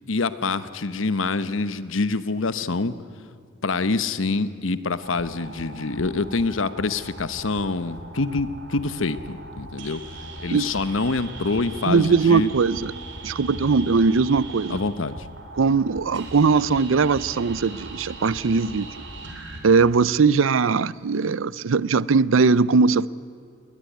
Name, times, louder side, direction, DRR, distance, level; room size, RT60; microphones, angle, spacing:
voice 1, 0.1-2.9 3.6-10.0 10.4-12.5 14.7-15.3, left 3 dB, 80° left, 0.9 m, -26 dB
sound 1, 5.0-19.6, right 2 dB, 65° right, 3.4 m, -39 dB
voice 2, 11.9-12.9 13.2-14.8 15.6-18.9 19.6-23.1, right 4 dB, 85° right, 0.5 m, -20 dB
20.5 x 20.0 x 9.4 m
head